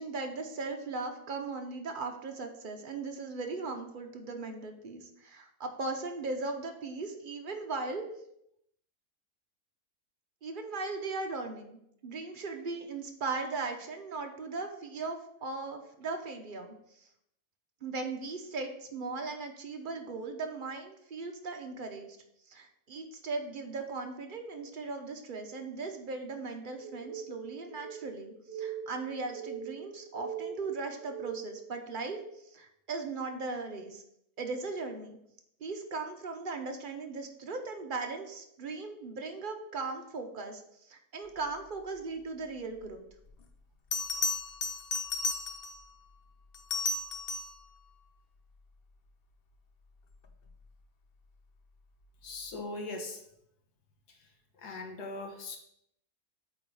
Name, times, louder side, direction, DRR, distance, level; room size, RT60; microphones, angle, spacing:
voice 1, 0.0-8.0 10.4-16.7 17.8-22.2 22.5-32.2 32.5-34.0 34.4-35.2 35.6-40.6 40.9-43.0, right 3 dB, 40° right, 4 dB, 0.8 m, -38 dB
sound 1, 26.8-31.6, right 7 dB, 10° right, 1.2 m, -42 dB
Bell, 43.3-43.4 43.9-45.8 46.5-47.6 50.3-50.5, left 3 dB, 55° left, 0.7 m, -33 dB
voice 2, 52.2-53.2 54.1-54.3 54.6-55.6, left 2 dB, 85° left, 3 dB, 1.7 m, -40 dB
8.5 x 3.9 x 4.7 m, 0.75 s
omnidirectional pair, 1.7 m